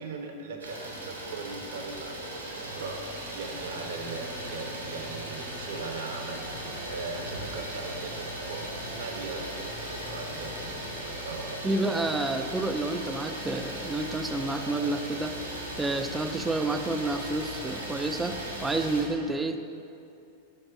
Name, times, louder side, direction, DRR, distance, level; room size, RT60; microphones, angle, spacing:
voice 1, 0.0-12.3, right 4 dB, 60° right, 3 dB, 0.7 m, -40 dB
Idling, 0.6-19.0, right 1 dB, 80° right, 1.0 m, -37 dB
sound 1, 3.4-11.3, left 3 dB, 75° left, 1.0 m, -50 dB
voice 2, 11.6-15.4 15.8-19.6, right 2 dB, 10° right, 7 dB, 0.3 m, -29 dB
5.4 x 3.6 x 5.8 m, 2.6 s
figure-of-eight pair, 90°, 0 cm